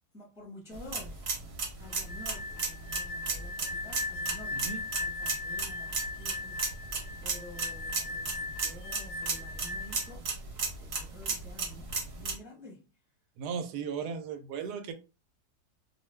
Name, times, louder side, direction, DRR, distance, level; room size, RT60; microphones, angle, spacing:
voice 1, 0.1-1.3 1.8-4.7 5.0-10.5 10.7-12.9, left 1 dB, ahead, 0.7 m, -50 dB
sound 1, 0.7-12.3, right 4 dB, 50° right, 0.9 m, -36 dB
sound 2, 1.9-10.1, left 3 dB, 65° left, 0.9 m, -39 dB
voice 2, 13.4-14.9, right 6 dB, 80° right, 1.1 m, -36 dB
2.6 x 2.4 x 3.1 m
omnidirectional pair, 1.7 m